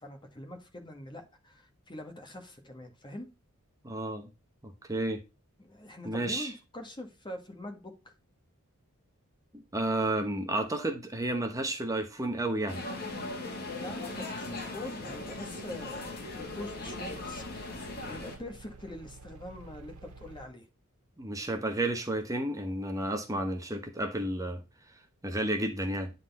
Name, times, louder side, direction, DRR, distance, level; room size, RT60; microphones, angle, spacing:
voice 1, 0.0-3.3 5.6-8.1 13.8-17.4 18.0-20.7, left 1 dB, 20° left, 1.6 m, -44 dB
voice 2, 3.8-4.3 4.6-5.2 6.0-6.5 9.7-12.8 21.2-24.6 25.2-26.1, right 1 dB, 15° right, 1.0 m, -31 dB
sound 1, 12.7-18.4, left 2 dB, 45° left, 2.0 m, -39 dB
sound 2, 15.1-20.5, right 3 dB, 85° right, 1.0 m, -51 dB
9.8 x 4.0 x 4.1 m
head